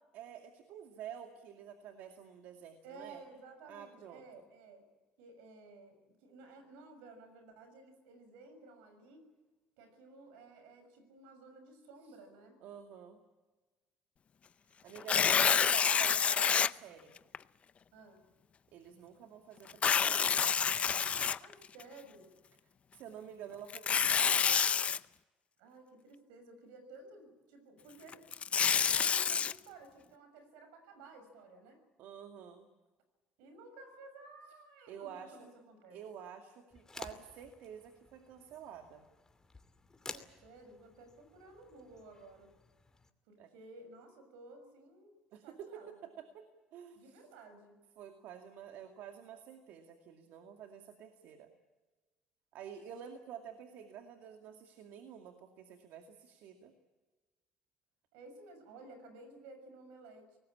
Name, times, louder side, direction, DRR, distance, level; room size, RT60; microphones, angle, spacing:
voice 1, 0.1-3.2 3.7-4.4 12.6-13.2 14.8-17.2 18.7-20.4 22.9-24.6 32.0-32.7 34.9-35.5 35.9-39.1 43.4-43.5 45.3-47.3 48.0-51.5 52.5-56.7, right 8 dB, 75° right, 5 dB, 2.3 m, -50 dB
voice 2, 2.8-4.9 5.2-9.3 9.8-12.6 15.5-15.7 17.9-18.2 21.4-22.3 25.6-28.2 28.9-31.8 33.4-36.0 40.1-42.5 43.3-45.2 45.4-46.1 46.9-47.7 58.1-60.4, right 3 dB, 90° right, 9 dB, 6.3 m, -55 dB
Tearing, 15.0-16.7 17.3-17.4 19.7-21.8 23.7-25.0 28.1-29.5, left 7 dB, 40° left, 0.7 m, -28 dB
sound 1, 36.7-43.1, left 3 dB, 20° left, 2.6 m, -52 dB
24.5 x 19.5 x 8.7 m, 1.2 s
supercardioid pair, 85°, 3 cm